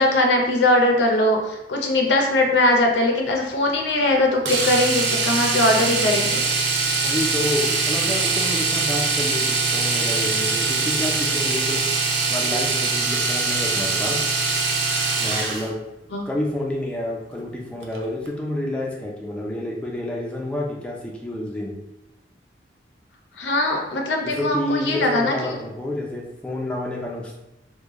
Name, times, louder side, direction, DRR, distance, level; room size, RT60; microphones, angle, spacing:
voice 1, 0.0-6.4 16.1-16.3 23.4-25.3, left 1 dB, 85° left, 2 dB, 0.6 m, -20 dB
Domestic sounds home sounds, 4.5-15.7 17.8-18.0 18.3-18.4, right 4 dB, 75° right, 0.6 m, -23 dB
voice 2, 7.0-11.8 12.3-14.2 15.2-15.8 16.3-21.8 24.2-27.3, left 1 dB, 5° left, -2 dB, 0.4 m, -29 dB
3.2 x 2.2 x 3.6 m, 0.93 s
head